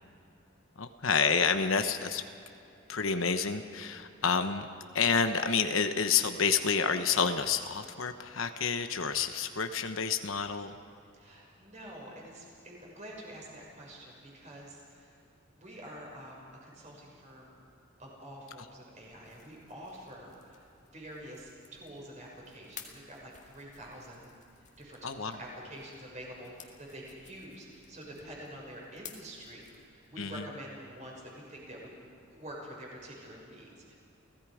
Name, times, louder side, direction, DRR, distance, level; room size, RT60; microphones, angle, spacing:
voice 1, 0.8-2.2 2.9-4.7 4.9-10.7 25.0-25.4 30.2-30.5, left 6 dB, 75° left, 8 dB, 1.0 m, -29 dB
voice 2, 11.2-15.1 15.6-17.5 18.0-24.3 24.8-33.9, equal, 35° right, -2 dB, 5.9 m, -47 dB
sound 1, 19.0-30.2, left 7 dB, 35° left, 1.9 m, -55 dB
29.5 x 17.5 x 5.0 m, 2.7 s
head